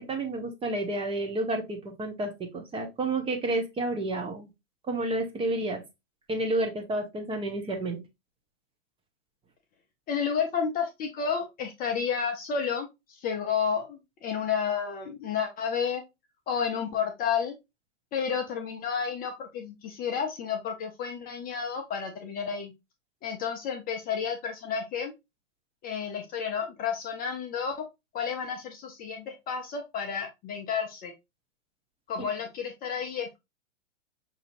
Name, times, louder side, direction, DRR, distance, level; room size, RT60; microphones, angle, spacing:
voice 1, 0.0-4.5 4.9-5.8 6.3-8.0, right 2 dB, 15° right, 3 dB, 0.9 m, -30 dB
voice 2, 10.1-16.0 16.5-17.6 18.1-22.7 23.2-25.1 25.8-27.8 28.1-31.1 32.1-33.4, left 6 dB, 25° left, 3 dB, 0.6 m, -31 dB
5.6 x 2.8 x 2.5 m, 0.22 s
hypercardioid pair, 110°, 38 cm